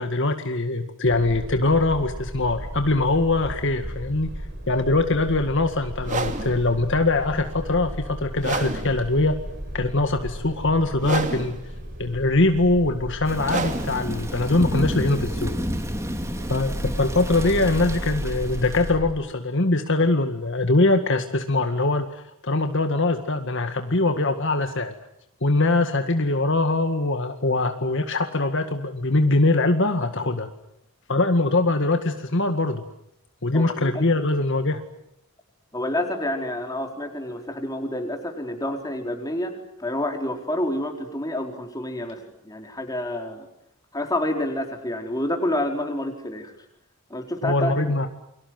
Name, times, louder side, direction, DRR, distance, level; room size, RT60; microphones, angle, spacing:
voice 1, 0.0-9.3 9.7-11.6 12.0-15.5 16.5-24.9 25.4-30.5 31.1-32.8 33.4-34.8 47.4-48.1, left 2 dB, 55° left, 6 dB, 2.0 m, -22 dB
sound 1, 1.0-19.1, equal, 50° right, 7.5 m, -35 dB
sound 2, 6.0-15.8, right 3 dB, 35° right, 2.6 m, -33 dB
Thunder / Rain, 13.2-19.0, equal, 15° right, 2.9 m, -31 dB
voice 2, 33.5-34.1 35.7-43.5 43.9-46.5 47.1-47.9, left 1 dB, 15° left, 3 dB, 4.5 m, -28 dB
29.5 x 24.5 x 7.8 m, 0.76 s
head